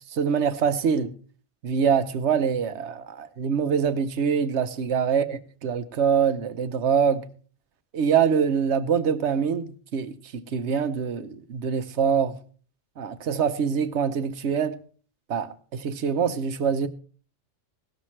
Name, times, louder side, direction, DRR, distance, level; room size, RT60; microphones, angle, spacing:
voice 1, 0.1-1.1 1.6-7.2 7.9-12.4 13.0-14.7 15.3-16.9, right 7 dB, 65° right, 1.1 m, -24 dB
17.0 x 13.0 x 3.2 m
omnidirectional pair, 1.3 m